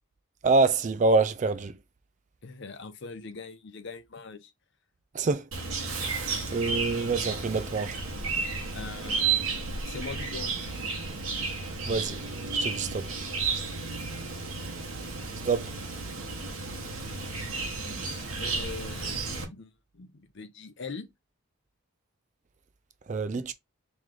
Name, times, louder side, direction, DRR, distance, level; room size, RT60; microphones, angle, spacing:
voice 1, 0.4-1.7 5.1-5.5 6.0-6.2 6.5-8.0 11.9-12.2 12.5-13.1 15.4-15.7 23.1-23.5, right 3 dB, 35° right, 0.3 m, -26 dB
voice 2, 2.4-4.5 8.7-9.4 9.8-11.0 18.4-21.1, left 4 dB, 55° left, 0.6 m, -42 dB
Chirp tweet, 5.5-19.4, right 4 dB, 70° right, 1.1 m, -32 dB
3.1 x 3.1 x 3.7 m
head